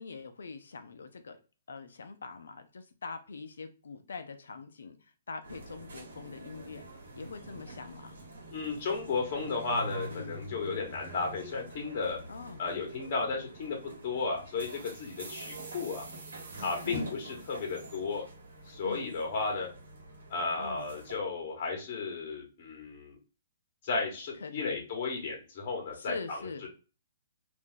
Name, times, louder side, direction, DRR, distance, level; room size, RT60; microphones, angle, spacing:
voice 1, 0.0-1.4 1.7-5.0 5.3-6.8 7.2-8.2 10.1-10.4 12.3-12.6 16.8-17.2 18.8-19.1 20.6-20.9 24.4-24.8 26.0-26.7, left 4 dB, 85° left, 7 dB, 0.5 m, -43 dB
sound 1, 5.4-21.2, right 2 dB, 80° right, 1.1 m, -45 dB
voice 2, 8.5-12.2 12.6-13.8 14.0-16.0 16.6-18.2 18.7-19.7 20.3-23.1 23.8-26.7, left 4 dB, 45° left, 1 dB, 1.1 m, -34 dB
2.5 x 2.3 x 3.6 m, 0.34 s
hypercardioid pair, 145°, 0 cm